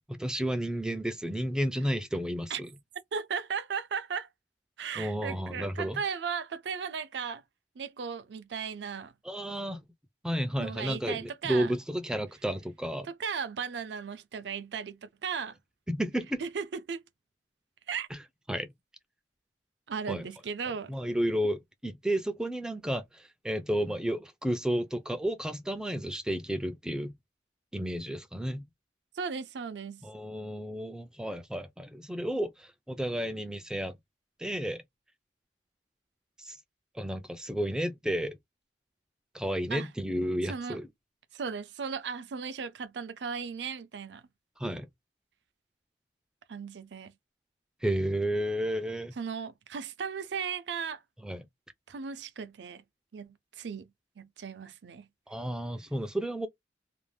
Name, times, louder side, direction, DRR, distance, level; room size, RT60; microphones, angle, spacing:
voice 1, 0.1-2.6 5.0-6.0 9.2-9.8 10.2-13.1 15.9-16.4 18.1-18.2 18.5-18.7 20.1-20.2 20.9-27.1 27.7-28.6 30.0-34.0 34.4-34.8 36.4-36.6 36.9-38.4 39.3-40.9 44.6-44.9 47.8-49.1 51.2-51.5 55.3-56.5, equal, 5° right, 0.3 m, -32 dB
voice 2, 3.1-4.3 4.8-7.4 7.8-9.1 10.6-11.7 13.2-15.6 16.4-17.0 17.9-18.1 19.9-20.9 29.2-30.0 39.7-39.9 40.4-40.8 41.3-44.2 46.5-47.1 49.2-51.0 51.9-52.8 53.1-53.9 54.2-55.1, right 6 dB, 75° right, 0.5 m, -36 dB
2.5 x 2.1 x 3.1 m
head